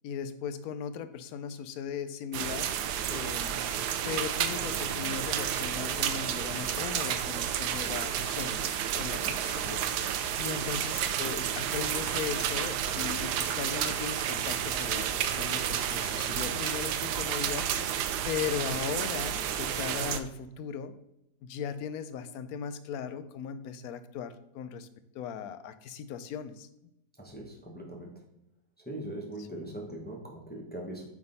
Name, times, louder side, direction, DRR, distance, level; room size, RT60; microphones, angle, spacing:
voice 1, 0.0-2.7 3.1-3.6 4.0-8.6 9.0-9.8 10.4-18.0 18.2-20.9 21.4-24.9 25.1-26.7 29.4-29.5, left 7 dB, 70° left, 11 dB, 1.0 m, -38 dB
sound 1, 2.3-20.2, right 9 dB, 85° right, 1.2 m, -31 dB
voice 2, 9.2-9.5 27.2-28.1 28.8-31.1, right 1 dB, 5° left, -1 dB, 1.0 m, -41 dB
9.4 x 3.7 x 4.0 m, 0.84 s
omnidirectional pair, 1.7 m